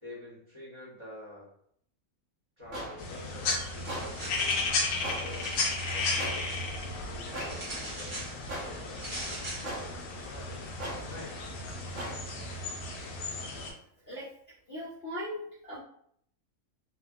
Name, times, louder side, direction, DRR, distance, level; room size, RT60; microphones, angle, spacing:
voice 1, 0.0-1.5 2.6-5.5 5.7-8.2 8.8-10.8 11.1-11.4, left 1 dB, 20° right, -9 dB, 0.9 m, -48 dB
sound 1, 2.6-12.2, equal, 60° right, 1.1 m, -42 dB
sound 2, 3.0-13.7, left 3 dB, 75° left, 1.0 m, -34 dB
sound 3, 3.7-4.8 5.2-6.6 7.5-8.3 8.9-9.7, right 1 dB, 40° right, 0.4 m, -41 dB
voice 2, 14.7-15.8, equal, 50° left, -8 dB, 0.7 m, -38 dB
3.3 x 2.1 x 2.3 m, 0.67 s
omnidirectional pair, 1.6 m